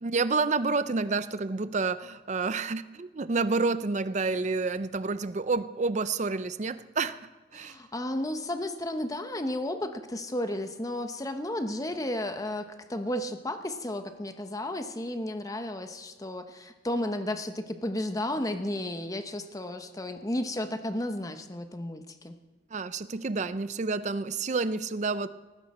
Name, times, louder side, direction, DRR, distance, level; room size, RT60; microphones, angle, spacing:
voice 1, 0.0-7.2 7.5-7.7 22.7-25.3, right 4 dB, 40° right, 14 dB, 0.5 m, -29 dB
voice 2, 7.5-22.4, left 1 dB, 20° left, 8 dB, 0.9 m, -33 dB
18.5 x 15.5 x 4.3 m, 1.2 s
head